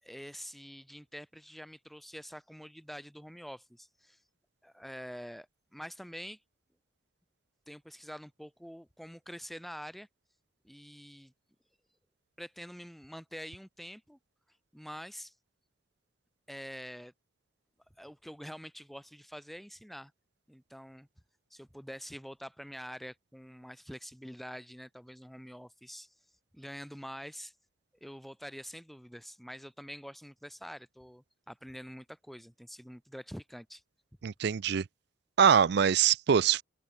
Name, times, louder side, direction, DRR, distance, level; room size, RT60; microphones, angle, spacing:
voice 1, 0.0-4.2 4.6-5.5 5.7-6.4 7.7-10.1 10.6-11.3 12.4-14.2 14.7-15.3 16.5-17.1 18.0-20.1 20.5-21.1 21.5-26.1 26.5-27.5 28.0-33.8, equal, ahead, 3.3 m, -46 dB
voice 2, 34.2-34.9 35.4-36.6, right 7 dB, 55° right, 0.4 m, -23 dB
open air
head